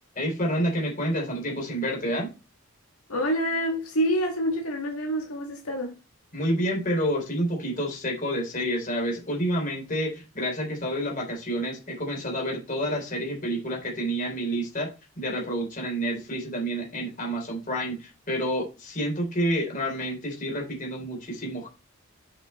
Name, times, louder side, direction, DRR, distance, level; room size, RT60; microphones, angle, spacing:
voice 1, 0.2-2.3 6.3-14.9 15.2-21.7, equal, 40° left, 3.6 m, -29 dB
voice 2, 3.1-5.9, equal, 90° left, 2.0 m, -27 dB
7.0 x 5.7 x 4.3 m
head